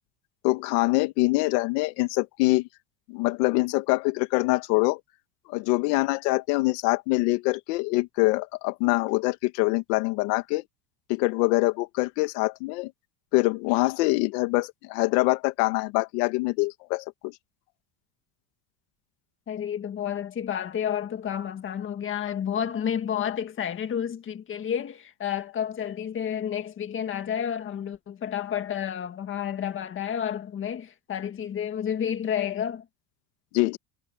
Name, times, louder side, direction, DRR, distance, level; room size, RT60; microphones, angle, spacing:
voice 1, 0.4-2.7 3.1-5.0 5.5-10.6 11.1-12.9 13.3-17.3 33.5-33.8, left 23 dB, 70° left, 1.6 m, -24 dB
voice 2, 19.5-32.8, left 9 dB, 25° left, 1.8 m, -30 dB
cardioid pair, 155°, 49 cm